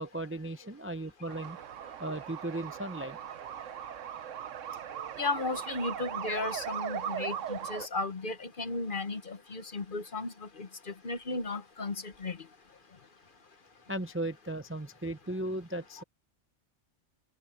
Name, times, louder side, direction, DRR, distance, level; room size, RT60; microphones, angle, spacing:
voice 1, 0.0-1.6 2.0-3.2 13.9-16.0, right 1 dB, 15° right, 0.6 m, -36 dB
sound 1, 1.3-7.9, right 9 dB, 80° right, 1.2 m, -39 dB
voice 2, 5.2-10.3 10.6-10.7 11.0-12.4, left 3 dB, 45° left, 1.2 m, -35 dB
omnidirectional pair, 1.3 m